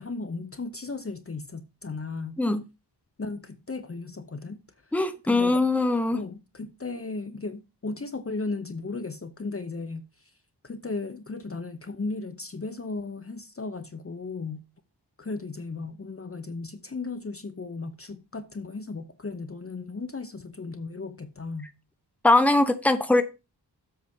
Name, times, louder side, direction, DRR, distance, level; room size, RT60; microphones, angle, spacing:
voice 1, 0.0-2.4 3.2-4.9 5.3-5.6 6.1-10.3 10.6-14.6 15.2-21.7, left 3 dB, 35° left, 0.8 m, -36 dB
voice 2, 4.9-6.2 22.2-23.2, left 2 dB, 5° left, 0.9 m, -21 dB
7.8 x 5.9 x 5.3 m
wide cardioid pair, 110°, 41 cm